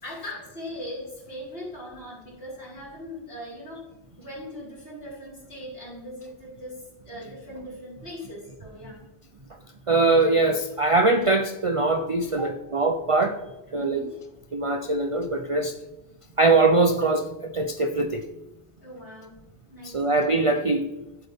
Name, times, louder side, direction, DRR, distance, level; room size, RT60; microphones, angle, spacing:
voice 1, 0.0-3.9 4.2-9.0 12.4-12.5 13.7-14.1 18.8-19.4 19.7-20.1, left 1 dB, 60° left, -7 dB, 4.5 m, -39 dB
voice 2, 9.9-12.4 12.7-13.4 13.7-14.0 14.5-15.7 16.4-18.2 19.8-20.9, right 3 dB, 40° right, 6 dB, 0.5 m, -22 dB
11.5 x 8.0 x 3.5 m, 0.99 s
omnidirectional pair, 1.2 m